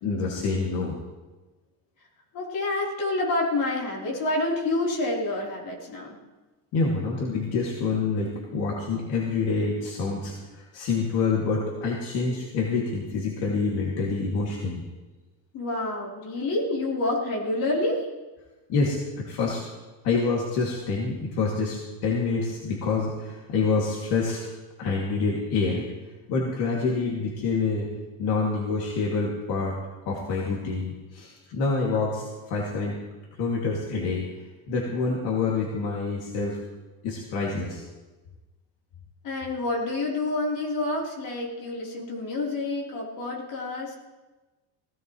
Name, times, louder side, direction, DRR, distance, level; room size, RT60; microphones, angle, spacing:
voice 1, 0.0-1.0 6.7-14.8 18.7-19.6 20.0-24.4 24.8-25.9 26.3-27.9 28.2-29.7 30.1-33.0 33.4-34.3 34.7-36.6 37.0-37.8, left 4 dB, 65° left, -3 dB, 2.6 m, -27 dB
voice 2, 2.3-6.2 15.5-18.1 39.2-43.9, left 2 dB, 50° left, -3 dB, 3.8 m, -28 dB
17.5 x 16.5 x 3.2 m, 1.2 s
cardioid pair, 170°, 41 cm